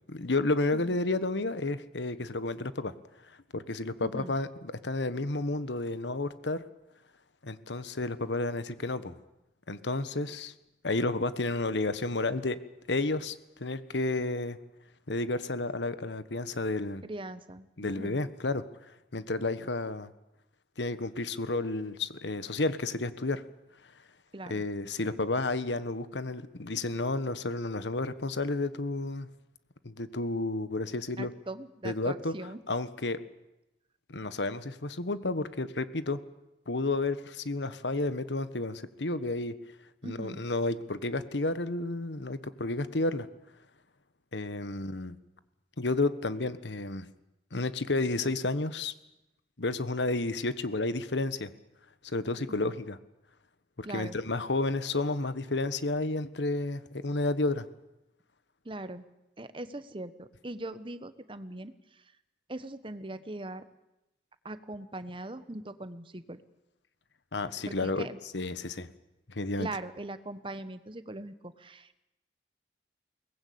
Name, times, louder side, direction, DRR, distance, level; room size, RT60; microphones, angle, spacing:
voice 1, 0.1-2.9 3.5-6.6 7.4-9.1 9.7-10.5 10.8-12.6 12.9-13.3 13.6-14.6 15.1-17.0 17.8-18.6 19.1-20.1 20.8-23.4 24.5-29.3 29.8-31.3 31.8-32.3 32.7-33.2 34.1-36.2 36.7-39.5 40.0-43.3 44.3-45.2 45.8-47.1 47.5-48.9 49.6-51.5 52.0-53.0 53.8-57.7 67.3-68.1 68.3-68.9 69.3-69.7, left 2 dB, 85° left, 13 dB, 1.3 m, -31 dB
voice 2, 4.0-4.3 17.0-17.7 18.0-18.2 24.3-24.6 31.2-32.6 40.0-40.4 52.6-52.7 53.8-54.2 58.6-59.1 59.4-62.0 62.5-63.7 64.4-66.4 67.7-68.2 69.6-72.0, right 2 dB, 30° right, 12 dB, 1.1 m, -41 dB
22.5 x 19.0 x 8.6 m, 0.92 s
head